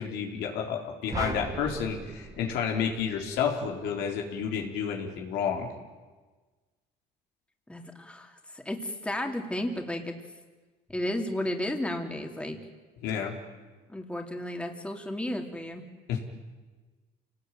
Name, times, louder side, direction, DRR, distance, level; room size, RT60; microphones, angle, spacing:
voice 1, 0.0-5.7 13.0-13.4 16.1-16.2, left 7 dB, 85° left, 2 dB, 4.0 m, -30 dB
sound 1, 1.1-3.5, right 3 dB, 20° right, 2.3 m, -38 dB
voice 2, 7.7-10.2 10.9-12.6 13.9-15.8, left 1 dB, 5° left, 3 dB, 2.9 m, -33 dB
27.5 x 19.0 x 9.2 m, 1.3 s
cardioid pair, 110°, 17 cm